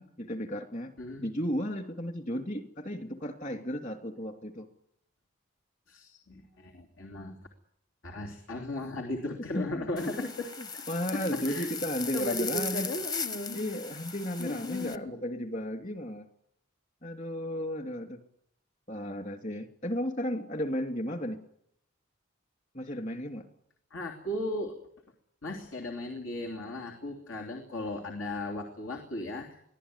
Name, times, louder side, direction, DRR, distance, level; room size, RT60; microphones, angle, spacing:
voice 1, 0.0-0.9 1.2-4.7 9.5-10.3 10.6-12.9 13.5-16.3 17.0-18.2 18.9-21.4 22.7-23.5, equal, 40° left, 7 dB, 2.7 m, -34 dB
voice 2, 1.0-1.3 5.9-7.4 8.0-10.5 10.7-10.8 11.1-11.7 12.1-13.6 14.4-15.1 23.9-24.8 25.4-29.6, left 1 dB, 90° left, 2 dB, 3.3 m, -36 dB
sound 1, 10.0-15.0, left 5 dB, 20° left, 0.9 m, -38 dB
23.5 x 16.0 x 9.8 m, 0.74 s
head